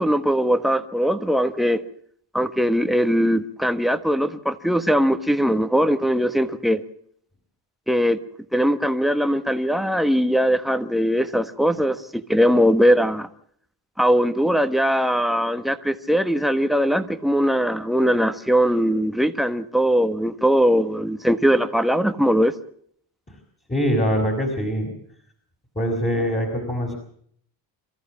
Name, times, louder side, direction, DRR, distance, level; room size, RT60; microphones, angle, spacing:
voice 1, 0.0-1.8 2.3-6.8 7.9-8.2 8.5-13.3 14.0-22.5, equal, ahead, 1.3 m, -20 dB
voice 2, 23.7-24.9 25.7-27.0, equal, 15° left, 4.9 m, -23 dB
27.0 x 14.5 x 7.4 m
cardioid pair, 110°, 46 cm